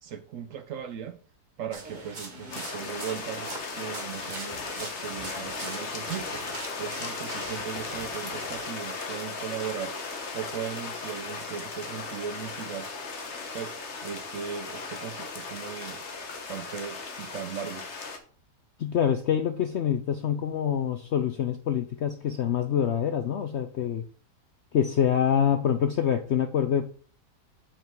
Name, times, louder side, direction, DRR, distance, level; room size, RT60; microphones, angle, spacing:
voice 1, 0.0-1.2 1.6-6.4 6.8-9.9 10.3-12.9 13.5-13.7 14.0-16.0 16.5-17.9, right 8 dB, 65° right, 0.9 m, -37 dB
sound 1, 1.7-8.5, right 2 dB, 30° right, 1.4 m, -41 dB
sound 2, 2.5-18.2, left 4 dB, 45° left, 1.3 m, -37 dB
voice 2, 18.8-24.0 24.7-26.9, left 8 dB, 70° left, 0.6 m, -26 dB
7.4 x 5.2 x 4.6 m
omnidirectional pair, 1.7 m